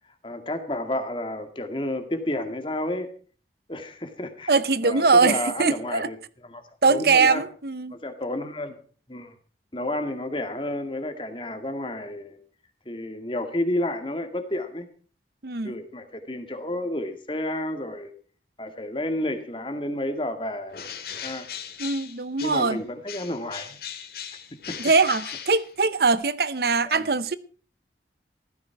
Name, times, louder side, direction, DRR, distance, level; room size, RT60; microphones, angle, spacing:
voice 1, 0.2-3.1 3.7-4.6 4.8-6.2 6.4-7.4 7.9-8.8 9.1-9.3 9.7-12.4 12.9-14.9 15.6-18.1 18.6-20.8 21.2-21.5 22.4-23.8 24.7-24.8 26.8-27.1, left 1 dB, 30° left, 2.1 m, -31 dB
voice 2, 4.5-6.1 6.8-8.0 15.4-15.7 21.8-22.8 24.8-27.4, right 4 dB, 60° right, 0.8 m, -22 dB
Bird, 20.7-22.8 23.1-26.1, left 8 dB, 60° left, 2.2 m, -38 dB
15.5 x 14.0 x 4.6 m
head